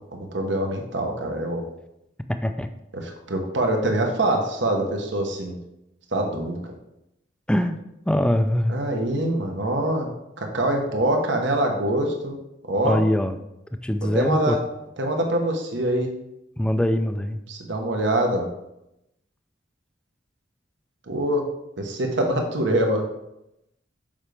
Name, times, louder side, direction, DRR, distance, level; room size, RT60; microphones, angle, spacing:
voice 1, 0.0-1.6 2.9-5.6 6.1-6.6 8.7-10.1 10.4-12.4 12.7-13.0 14.1-14.6 15.0-16.1 17.5-18.5 21.1-21.4 21.8-23.0, right 1 dB, 75° right, 3 dB, 1.1 m, -24 dB
voice 2, 2.3-2.7 7.5-8.8 12.8-13.4 13.8-14.6 16.6-17.4, left 1 dB, 5° left, 8 dB, 0.3 m, -22 dB
7.2 x 5.1 x 3.4 m, 0.87 s
head